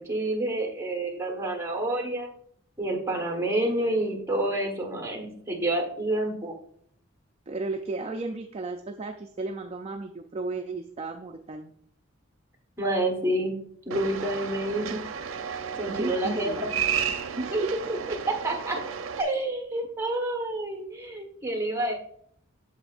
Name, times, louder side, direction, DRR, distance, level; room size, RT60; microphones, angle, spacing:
voice 1, 0.0-2.3 2.8-6.5 12.8-13.6 13.9-15.0 15.8-16.7 17.5-17.6 18.1-18.8 19.2-21.9, right 1 dB, 15° right, 2 dB, 1.3 m, -28 dB
voice 2, 7.5-11.7 15.9-16.6 17.4-17.9, right 3 dB, 30° right, 4 dB, 0.4 m, -34 dB
sound 1, 13.9-19.2, right 7 dB, 75° right, 0.6 m, -32 dB
8.3 x 7.0 x 2.5 m, 0.65 s
head